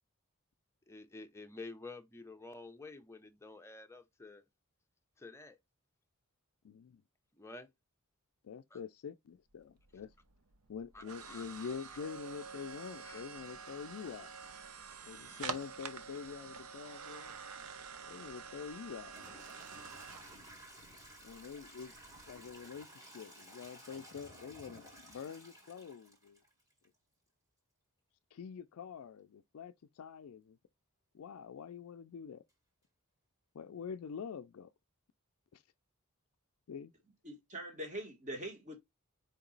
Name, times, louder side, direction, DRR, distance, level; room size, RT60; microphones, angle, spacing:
voice 1, 0.9-4.4 5.2-5.6 7.4-7.7 8.7-8.8 10.9-11.7 13.0-13.2, left 3 dB, 10° left, 0.6 m, -50 dB
voice 2, 6.6-7.0 8.4-10.1 10.7-14.3 15.0-17.4 18.1-19.2 21.2-21.9 22.3-26.4 28.3-30.6 31.1-32.4 33.5-34.7 35.5-35.6 36.7-36.9, left 6 dB, 75° left, 0.4 m, -46 dB
sound 1, 9.5-22.6, right 6 dB, 85° right, 0.7 m, -48 dB
Toilet flush / Trickle dribble, 19.0-26.8, equal, 15° right, 1.8 m, -55 dB
voice 3, 37.2-38.7, right 1 dB, 35° right, 1.8 m, -43 dB
4.6 x 2.9 x 3.8 m
head